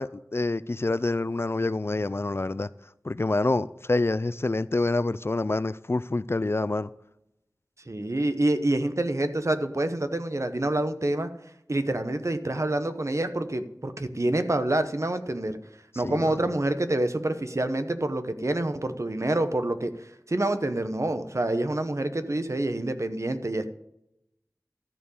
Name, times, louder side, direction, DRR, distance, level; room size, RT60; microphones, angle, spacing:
voice 1, 0.0-2.7 3.0-6.9 16.0-16.5, left 2 dB, 40° left, 0.3 m, -27 dB
voice 2, 7.9-11.3 11.7-15.6 16.0-23.7, right 1 dB, 50° right, 0.9 m, -27 dB
13.5 x 4.6 x 8.4 m
wide cardioid pair, 45°, 6 cm